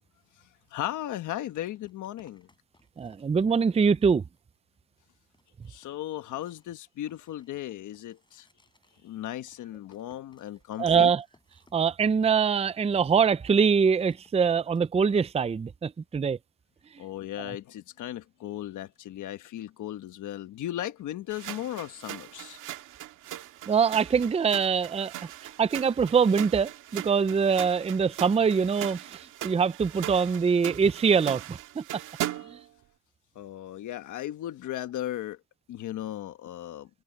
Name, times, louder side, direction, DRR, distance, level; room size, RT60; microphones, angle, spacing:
voice 1, 0.4-2.5 5.7-8.5 9.0-11.1 17.0-22.6 32.3-32.5 33.3-35.4 35.7-36.9, left 13 dB, 80° left, 1.3 m, -36 dB
sound 1, 0.6-0.7 1.6-4.6 5.0-5.1 5.3-13.5 13.7-14.9, left 2 dB, 15° left, 7.8 m, -66 dB
voice 2, 3.0-4.2 10.8-11.2 11.7-16.4 17.5-17.6 23.7-25.1 25.4-32.0 32.5-32.6, right 6 dB, 20° right, 0.5 m, -24 dB
sound 2, 21.3-32.6, right 14 dB, 85° right, 2.1 m, -39 dB
cardioid pair, 90°, 30 cm